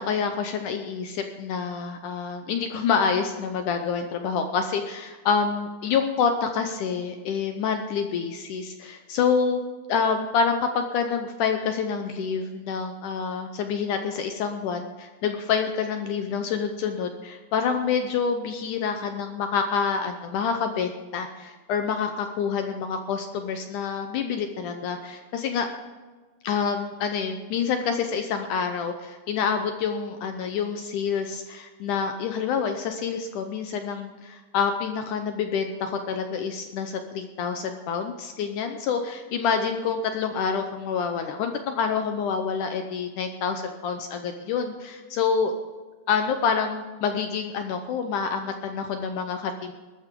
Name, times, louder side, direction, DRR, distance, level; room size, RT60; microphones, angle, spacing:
voice 1, 0.0-9.6 9.9-25.7 26.4-45.5 46.1-49.7, left 6 dB, 70° left, 6 dB, 2.0 m, -27 dB
21.0 x 13.0 x 3.7 m, 1.3 s
omnidirectional pair, 4.4 m